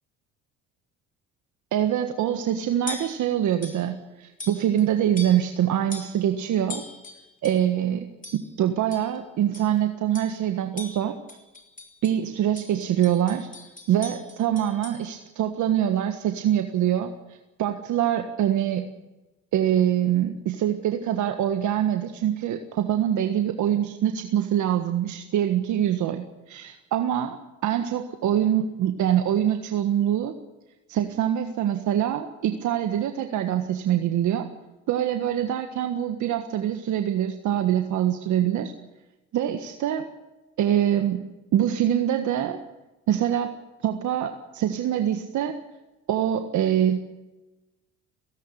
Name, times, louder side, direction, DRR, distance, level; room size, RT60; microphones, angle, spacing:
voice 1, 1.7-6.8 7.4-8.1 8.3-11.2 12.0-13.5 13.9-17.1 17.6-18.9 19.5-30.3 30.9-34.5 34.9-38.7 39.3-40.1 40.6-41.2 41.5-42.6 43.1-43.5 43.8-45.6 46.1-47.0, right 10 dB, 65° right, 6 dB, 1.6 m, -24 dB
sound 1, 2.3-2.5 2.9-3.2 3.6-3.9 4.4-4.9 5.2-5.6 5.9-6.2 6.7-7.7 8.2-8.5 8.9-9.2 9.5-9.8 10.1-10.4 10.8-12.2 12.6-15.0, left 3 dB, 25° left, 5.3 m, -41 dB
17.5 x 17.5 x 9.9 m, 1.1 s
supercardioid pair, 70°, 32 cm